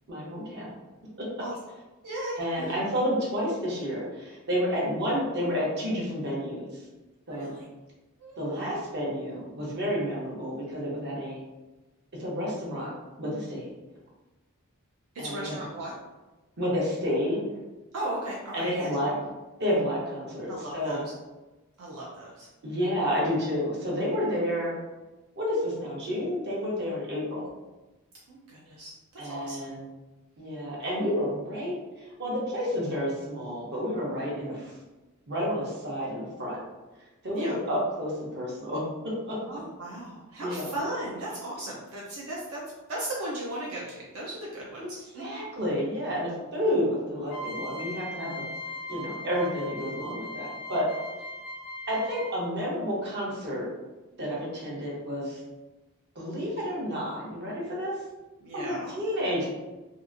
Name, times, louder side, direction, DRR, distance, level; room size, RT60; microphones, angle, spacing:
voice 1, 0.1-0.7 1.2-1.3 2.4-6.8 7.3-7.5 8.4-11.4 12.2-12.9 13.2-13.7 15.2-15.6 16.6-17.4 18.5-19.1 19.6-21.0 22.6-24.8 25.4-27.4 29.2-29.8 30.4-34.7 35.3-36.6 37.2-39.4 40.4-40.7 44.8-44.9 45.2-48.4 48.9-50.9 51.9-53.7 54.2-55.4 56.1-58.0 58.5-59.5, equal, 50° right, -4 dB, 0.8 m, -30 dB
voice 2, 2.0-2.7 7.3-7.6 8.2-8.8 15.1-16.0 17.9-18.9 20.5-21.0 21.8-22.5 27.4-27.5 28.3-29.6 37.3-37.6 39.5-42.6 42.9-45.2 58.4-58.9, right 1 dB, 75° right, -4 dB, 0.5 m, -37 dB
sound 1, 47.3-52.5, equal, 85° left, 0.5 m, -39 dB
2.7 x 2.4 x 2.5 m, 1.1 s
head